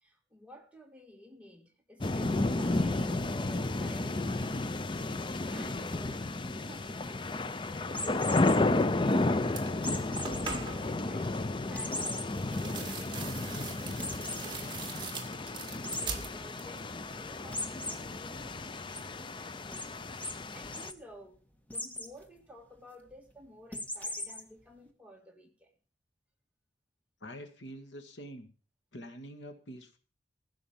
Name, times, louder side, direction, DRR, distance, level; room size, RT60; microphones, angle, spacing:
voice 1, 0.0-4.7 5.5-14.9 15.6-21.4 21.7-25.7, equal, 5° right, 1.8 m, -53 dB
sound 1, 2.0-20.9, left 2 dB, 25° left, 0.5 m, -32 dB
sound 2, 7.9-8.6 9.8-10.6 11.0-11.1 11.7-12.2 12.7-12.8 13.1-13.2 14.0-14.4 15.8-16.1 17.5-17.9 18.4-19.0 19.7-19.9 20.2-20.3 20.6-20.9 21.7-22.1 23.7-24.4, left 1 dB, 10° left, 1.5 m, -37 dB
sound 3, 9.0-9.2 9.5-11.0 12.3-16.9 17.2-17.8, right 4 dB, 25° right, 2.0 m, -42 dB
voice 2, 27.2-28.5 28.9-30.0, equal, 80° left, 2.0 m, -46 dB
15.5 x 6.4 x 7.3 m
head